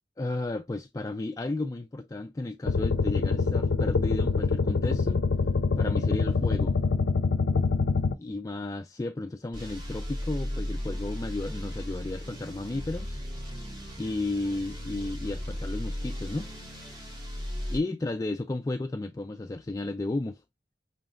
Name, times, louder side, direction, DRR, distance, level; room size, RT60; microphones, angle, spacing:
voice 1, 0.2-5.3 5.8-6.8 8.2-13.2 14.0-16.5 17.7-20.4, left 2 dB, 20° left, 0.3 m, -33 dB
sound 1, 2.7-8.2, left 4 dB, 85° left, 0.5 m, -25 dB
sound 2, 9.5-17.8, left 1 dB, 30° right, 1.5 m, -36 dB
5.7 x 3.8 x 2.4 m
head